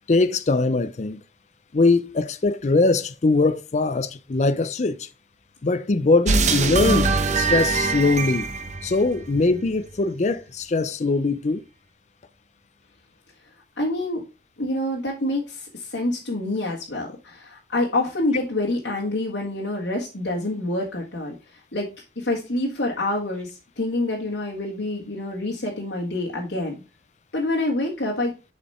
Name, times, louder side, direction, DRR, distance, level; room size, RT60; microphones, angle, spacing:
voice 1, 0.1-1.2 1.7-5.1 5.6-8.5 8.8-11.6, left 3 dB, 40° left, 0.5 m, -21 dB
sound 1, 6.3-9.7, right 3 dB, 40° right, 0.9 m, -23 dB
voice 2, 13.8-14.2 14.6-21.9 22.2-26.8 27.3-28.3, left 2 dB, 85° left, 1.8 m, -27 dB
7.1 x 5.0 x 4.2 m
head